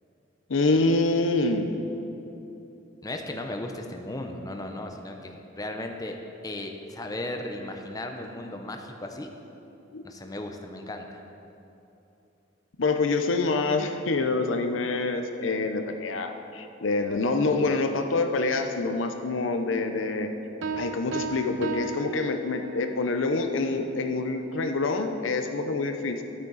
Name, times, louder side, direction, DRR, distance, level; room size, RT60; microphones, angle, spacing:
voice 1, 0.5-1.7 9.9-10.0 12.8-20.3 20.8-26.2, left 3 dB, 80° left, 6 dB, 0.7 m, -26 dB
voice 2, 3.0-6.2 6.4-9.3 10.0-11.2, left 1 dB, 20° left, 4 dB, 0.7 m, -36 dB
sound 1, 20.6-23.0, right 3 dB, 75° right, 0.6 m, -34 dB
12.5 x 8.7 x 4.0 m, 2.9 s
head